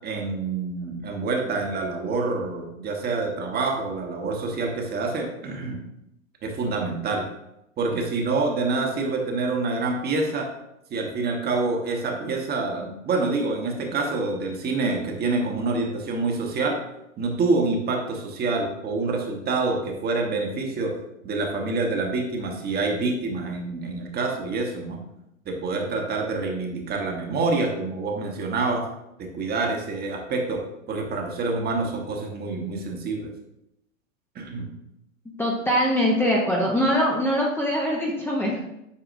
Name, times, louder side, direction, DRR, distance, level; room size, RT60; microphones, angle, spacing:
voice 1, 0.0-5.8 6.4-7.2 7.8-10.5 10.9-16.8 17.2-20.9 21.2-25.0 25.4-28.9 29.2-33.3 34.3-34.7, right 3 dB, 25° right, 2 dB, 1.2 m, -27 dB
voice 2, 35.4-38.6, equal, 5° left, -4 dB, 0.8 m, -22 dB
8.3 x 4.7 x 2.6 m, 0.83 s
hypercardioid pair, 115°, 40 cm